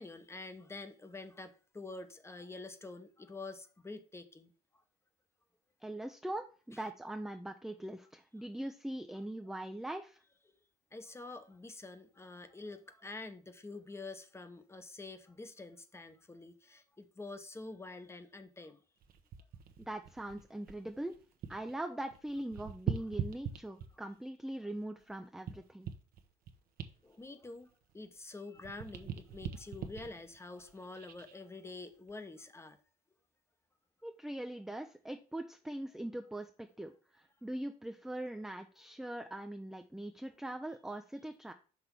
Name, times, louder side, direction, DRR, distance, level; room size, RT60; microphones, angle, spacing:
voice 1, 0.0-4.5 10.9-18.8 27.0-32.8, left 3 dB, 15° left, 0.8 m, -47 dB
voice 2, 5.8-10.2 19.8-21.2 21.5-25.9 34.0-41.5, right 1 dB, ahead, 0.4 m, -41 dB
sound 1, 19.0-21.7 22.0-24.2 24.7-28.3 28.5-31.3 31.9-32.1, right 8 dB, 60° right, 0.9 m, -43 dB
6.0 x 3.3 x 5.7 m
cardioid pair, 110°, 17 cm